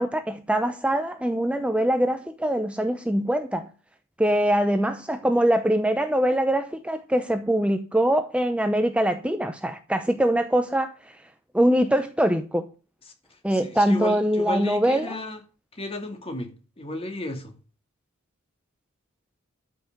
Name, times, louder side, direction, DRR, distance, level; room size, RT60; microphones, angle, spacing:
voice 1, 0.0-3.7 4.2-11.2 11.5-12.7 13.4-15.2, right 1 dB, 5° right, 0.7 m, -23 dB
voice 2, 13.5-15.4 15.7-17.5, left 2 dB, 30° left, 2.5 m, -33 dB
13.0 x 6.0 x 6.6 m
head